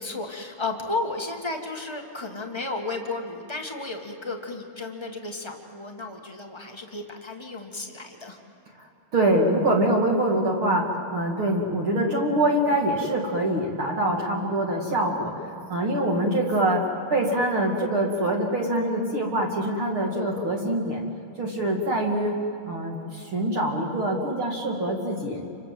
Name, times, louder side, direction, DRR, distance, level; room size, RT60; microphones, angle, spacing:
voice 1, 0.0-8.4, left 3 dB, 25° left, 2 dB, 0.5 m, -33 dB
voice 2, 9.1-15.3 15.7-21.0 21.4-22.3 22.7-25.4, right 1 dB, 40° right, 0 dB, 3.0 m, -24 dB
29.5 x 25.5 x 7.7 m, 2.7 s
omnidirectional pair, 4.2 m